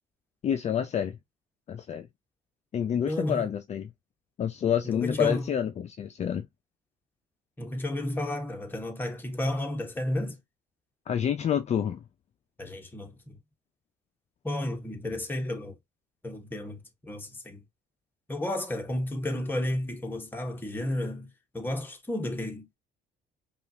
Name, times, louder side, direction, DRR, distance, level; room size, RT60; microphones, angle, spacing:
voice 1, 0.4-1.2 1.7-2.1 2.7-3.9 4.4-6.5 11.1-12.0, left 8 dB, 40° left, 0.5 m, -28 dB
voice 2, 3.1-3.5 4.8-5.5 7.6-10.4 12.6-13.4 14.4-15.8 16.2-17.6 18.3-21.3 21.5-22.7, left 1 dB, 10° left, 1.2 m, -32 dB
5.4 x 2.5 x 2.8 m
cardioid pair, 110°, 17 cm